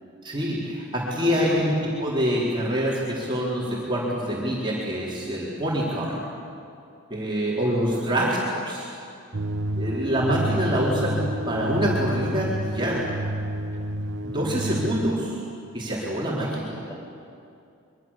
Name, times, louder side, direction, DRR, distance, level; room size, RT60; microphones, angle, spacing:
voice 1, 0.2-1.7 2.0-6.2 7.1-8.9 9.7-11.2 11.5-13.0 14.2-15.4 15.7-16.7, equal, 20° right, -6 dB, 4.4 m, -25 dB
voice 2, 1.2-1.7 7.9-8.2 16.7-16.9, left 1 dB, 15° left, -2 dB, 6.0 m, -40 dB
sound 1, 9.3-15.1, right 1 dB, 55° right, 1.1 m, -29 dB
26.0 x 23.5 x 7.5 m, 2.5 s
head